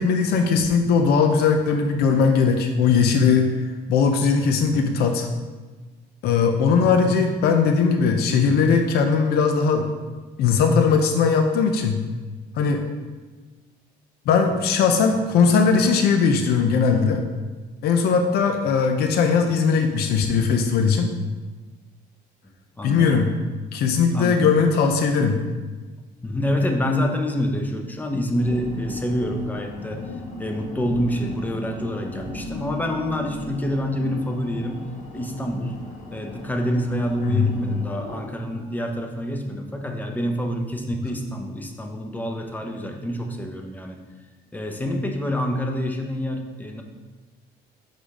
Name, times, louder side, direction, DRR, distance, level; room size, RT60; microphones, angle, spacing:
voice 1, 0.0-3.5 3.9-5.3 6.2-9.9 10.4-12.0 12.6-12.8 14.3-17.2 17.8-21.1 22.8-23.3 23.7-25.4 37.2-37.5, left 5 dB, 70° left, 5 dB, 0.6 m, -19 dB
voice 2, 6.7-7.2 22.8-23.2 24.1-24.5 26.2-30.0 30.4-34.9 35.1-35.8 36.1-44.0 44.5-46.8, equal, 10° left, 3 dB, 0.7 m, -27 dB
sound 1, 28.4-38.2, left 2 dB, 45° left, 1.0 m, -37 dB
5.6 x 5.0 x 3.6 m, 1.3 s
cardioid pair, 110°, 17 cm